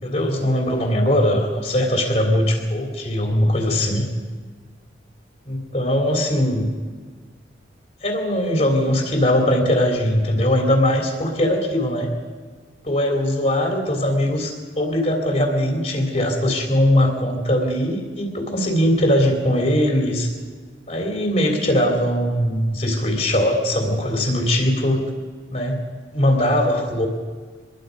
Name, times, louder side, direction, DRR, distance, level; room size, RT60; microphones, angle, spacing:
voice 1, 0.0-4.1 5.4-6.7 8.0-12.1 12.8-20.3 20.9-25.0 25.5-25.8 26.1-27.1, left 1 dB, 40° left, 1 dB, 3.4 m, -20 dB
25.5 x 21.5 x 5.3 m, 1.5 s
head